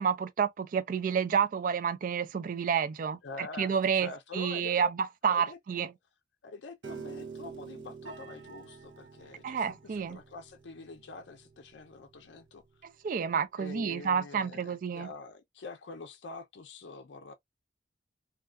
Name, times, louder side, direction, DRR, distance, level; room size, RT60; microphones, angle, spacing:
voice 1, 0.0-5.9 9.4-10.2 13.0-15.1, right 7 dB, 45° right, 0.3 m, -30 dB
voice 2, 3.2-4.9 5.3-5.9 6.4-12.6 13.6-17.3, left 4 dB, 75° left, 0.5 m, -45 dB
Piano, 6.8-13.0, right 5 dB, 85° right, 0.6 m, -48 dB
2.3 x 2.3 x 2.2 m
head